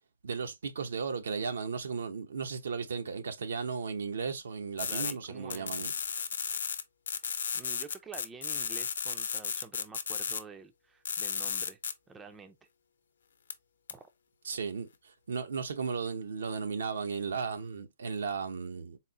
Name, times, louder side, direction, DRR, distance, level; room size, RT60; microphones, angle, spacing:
voice 1, 0.2-5.9 14.4-14.9 15.3-19.0, right 5 dB, 75° right, 0.7 m, -35 dB
sound 1, 4.8-5.1 5.5-6.8 7.1-10.4 11.0-11.9 13.5-13.6 13.9-14.0, left 6 dB, 80° left, 0.7 m, -34 dB
voice 2, 4.8-5.9 7.2-11.8 12.1-12.6 13.9-14.1, right 4 dB, 10° right, 0.4 m, -49 dB
4.1 x 2.0 x 3.7 m
hypercardioid pair, 150°, 0 cm